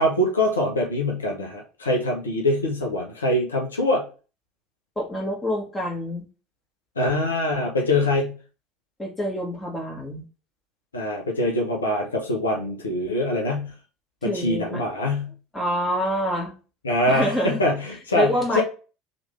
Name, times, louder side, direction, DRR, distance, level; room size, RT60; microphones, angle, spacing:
voice 1, 0.0-4.1 7.0-8.4 10.9-13.7 14.2-15.3 16.8-18.6, left 1 dB, 75° left, 0 dB, 0.7 m, -24 dB
voice 2, 4.9-6.2 9.0-10.3 14.2-14.8 15.5-16.5 17.1-17.6 18.1-18.6, equal, 10° left, -1 dB, 1.5 m, -26 dB
3.1 x 2.5 x 3.1 m, 0.34 s
figure-of-eight pair, 65°, 0 cm